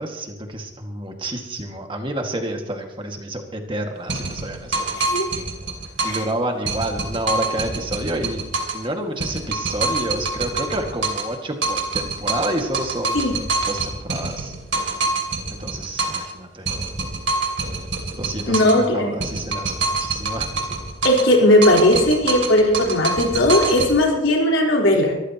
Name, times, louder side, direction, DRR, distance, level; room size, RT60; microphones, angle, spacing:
voice 1, 0.0-4.9 6.0-8.4 8.7-13.2 13.7-14.5 15.5-16.7 18.1-20.7, right 1 dB, 25° right, 3 dB, 1.9 m, -29 dB
sound 1, 4.1-6.3 6.7-8.9 9.2-11.4 11.6-16.3 16.7-18.9 19.2-21.3 21.6-23.9, right 3 dB, 70° right, 2.9 m, -25 dB
voice 2, 5.0-5.3 6.1-6.2 13.1-13.3 18.5-19.1 21.0-25.2, left 1 dB, 80° left, -1 dB, 4.2 m, -17 dB
23.5 x 15.0 x 3.0 m, 1.0 s
head